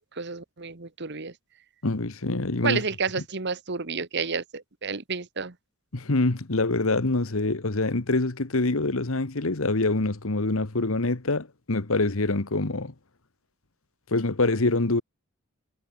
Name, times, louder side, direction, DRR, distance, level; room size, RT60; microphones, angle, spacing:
voice 1, 0.1-1.3 2.6-5.5, right 5 dB, 50° right, 1.5 m, -30 dB
voice 2, 1.8-2.8 5.9-12.9 14.1-15.0, left 2 dB, 70° left, 1.4 m, -25 dB
head